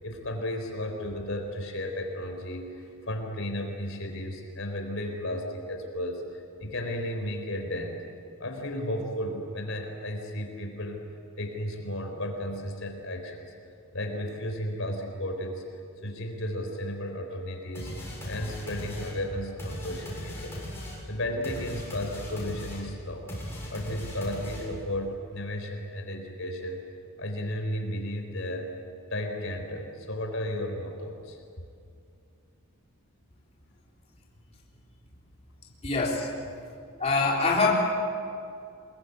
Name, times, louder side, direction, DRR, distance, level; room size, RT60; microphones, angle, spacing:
voice 1, 0.0-8.0 8.4-11.0 11.4-13.5 13.9-15.6 16.0-17.9 18.2-20.6 21.1-23.3 23.7-26.8 27.2-28.7 29.1-31.4 36.5-36.6, left 1 dB, 60° left, 4 dB, 4.1 m, -34 dB
sound 1, 17.7-24.9, left 1 dB, 10° left, 7.2 m, -38 dB
voice 2, 35.8-36.3 37.0-37.8, left 3 dB, 30° left, -4 dB, 3.8 m, -24 dB
26.5 x 22.0 x 8.3 m, 2.4 s
head